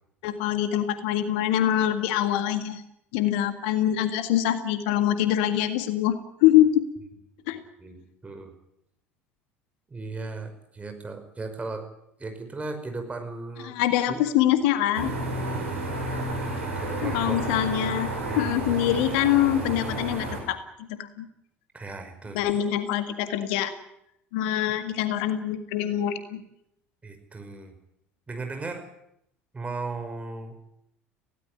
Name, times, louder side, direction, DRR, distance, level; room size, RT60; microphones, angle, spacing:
voice 1, 0.2-2.8 3.1-6.8 7.5-7.6 13.7-15.1 17.0-20.6 20.9-21.3 22.4-23.7 24.3-26.4, left 12 dB, 65° left, 10 dB, 1.9 m, -24 dB
voice 2, 7.8-8.5 9.9-11.9 12.2-13.8 14.1-14.2 15.4-15.9 16.8-17.4 18.3-18.6 21.7-22.4 27.0-27.8 28.3-28.9 29.5-30.5, right 3 dB, 20° right, 6 dB, 5.4 m, -36 dB
sound 1, 14.9-20.4, right 1 dB, 80° right, 6.2 m, -31 dB
19.0 x 17.5 x 9.9 m, 0.77 s
figure-of-eight pair, 65°, 7 cm